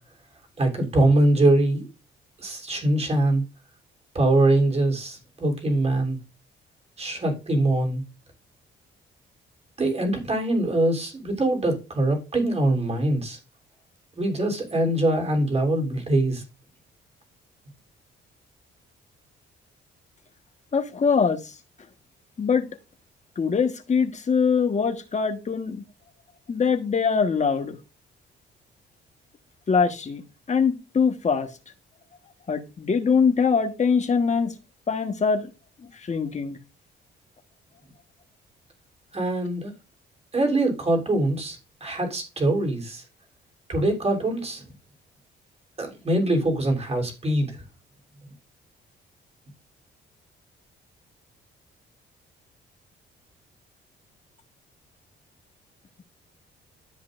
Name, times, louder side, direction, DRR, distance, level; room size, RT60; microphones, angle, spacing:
voice 1, 0.6-1.9 2.4-3.4 4.1-6.2 7.0-8.0 9.8-13.4 14.1-16.4 39.1-39.7 40.3-43.0 43.7-44.6 45.8-47.6, right 1 dB, 30° right, 3.4 m, -23 dB
voice 2, 20.7-21.5 22.4-22.7 23.4-25.8 26.5-27.8 29.7-30.2 30.5-31.5 32.5-34.5 34.9-35.5 35.8-36.6, left 5 dB, 35° left, 1.4 m, -23 dB
13.0 x 5.6 x 2.6 m
cardioid pair, 90°, 20 cm